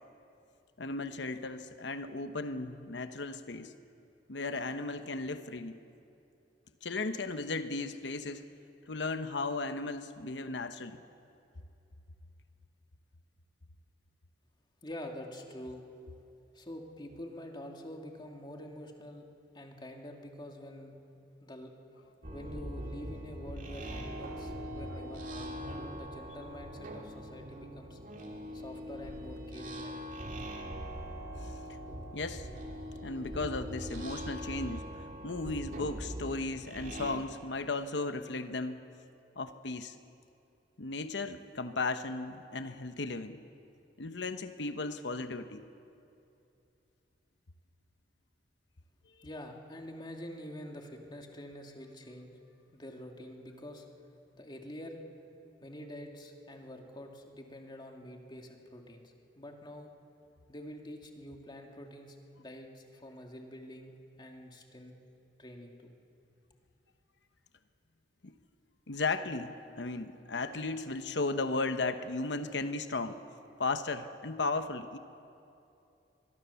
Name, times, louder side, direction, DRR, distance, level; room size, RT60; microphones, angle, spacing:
voice 1, 0.8-3.7 4.3-5.8 6.8-8.4 8.9-11.0 31.4-31.5 32.1-32.5 33.0-34.8 35.2-38.8 39.4-40.0 40.8-43.4 44.0-45.6 68.2-68.3 68.9-73.2 73.6-75.0, left 3 dB, 85° left, 9 dB, 1.0 m, -35 dB
voice 2, 14.8-15.8 16.5-19.3 19.5-20.9 21.4-21.7 22.3-25.6 25.9-28.0 28.5-30.0 49.2-52.3 52.7-53.9 54.4-55.0 55.6-59.9 60.5-64.9 65.4-65.9, left 1 dB, 25° left, 2 dB, 2.4 m, -46 dB
Ebow drone multi, 22.2-37.2, equal, 50° right, 2.4 m, -42 dB
23.5 x 21.5 x 7.0 m, 2.7 s
head